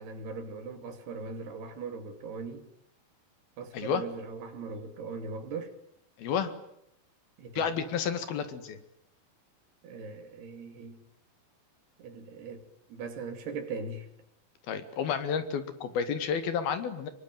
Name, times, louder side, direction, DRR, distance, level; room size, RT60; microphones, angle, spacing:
voice 1, 0.0-2.7 3.6-5.7 7.4-7.7 9.8-11.0 12.0-14.1, right 4 dB, 85° right, 4.7 m, -40 dB
voice 2, 6.2-6.5 7.6-8.8 14.7-17.1, left 7 dB, 70° left, 3.8 m, -31 dB
25.5 x 23.0 x 9.2 m
omnidirectional pair, 4.5 m